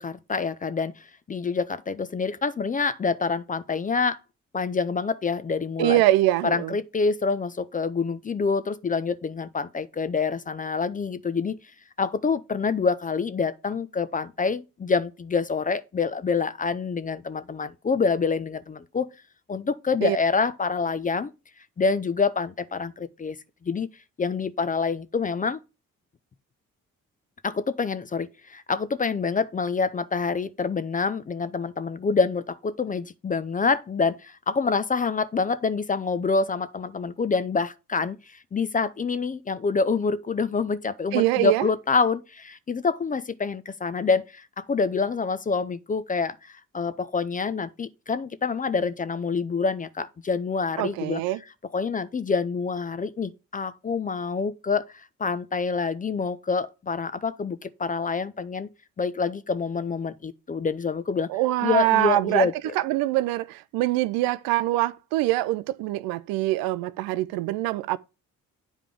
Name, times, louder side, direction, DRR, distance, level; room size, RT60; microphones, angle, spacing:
voice 1, 0.0-4.2 4.5-6.0 6.4-11.6 12.0-19.1 19.5-21.3 21.8-23.4 23.6-23.9 24.2-25.6 27.4-51.2 51.7-58.7 59.0-61.3 61.6-62.7, left 4 dB, 20° left, 0.5 m, -26 dB
voice 2, 5.8-6.7 20.0-20.2 41.1-41.7 50.8-51.4 61.3-62.5 62.8-68.0, right 16 dB, 60° right, 0.5 m, -24 dB
9.1 x 4.9 x 3.5 m
figure-of-eight pair, 40°, 41 cm